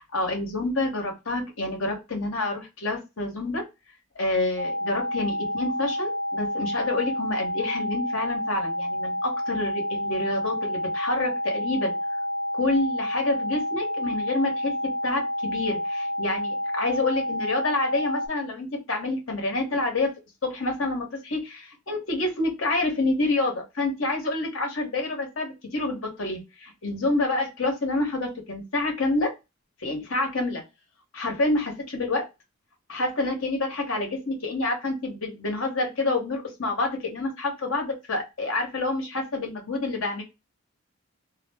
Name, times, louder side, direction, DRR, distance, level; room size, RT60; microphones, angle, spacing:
voice 1, 0.1-3.6 4.1-11.9 12.5-20.1 20.4-29.3 29.8-30.6 31.1-32.3 32.9-40.2, left 2 dB, 85° left, 2 dB, 1.0 m, -28 dB
sound 1, 4.6-18.3, left 1 dB, 75° right, 0.4 m, -29 dB
2.3 x 2.0 x 3.3 m, 0.24 s
head